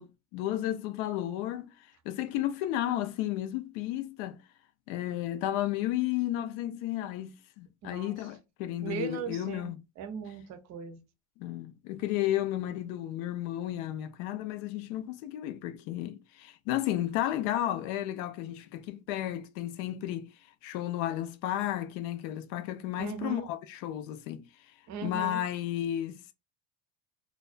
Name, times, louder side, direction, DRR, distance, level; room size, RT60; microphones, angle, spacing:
voice 1, 0.0-1.7 2.1-4.4 4.9-9.8 11.4-20.3 20.6-24.5 25.0-26.2, left 13 dB, 75° left, 0.5 m, -33 dB
voice 2, 7.8-8.2 8.8-9.7 10.0-11.0 23.0-23.5 24.9-25.4, right 6 dB, 40° right, 0.5 m, -38 dB
2.3 x 2.2 x 2.4 m
supercardioid pair, 120°, 44 cm